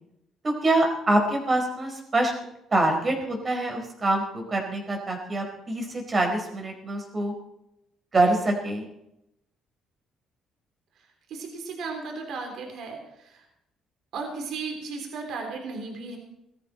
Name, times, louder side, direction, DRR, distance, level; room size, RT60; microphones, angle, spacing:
voice 1, 0.4-2.3 2.7-7.3 8.1-8.9, right 2 dB, 30° right, 3 dB, 4.6 m, -25 dB
voice 2, 11.0-13.5 14.1-16.2, right 4 dB, 70° right, 2 dB, 3.7 m, -35 dB
19.5 x 14.0 x 4.4 m, 0.84 s
cardioid pair, 100°, 0 cm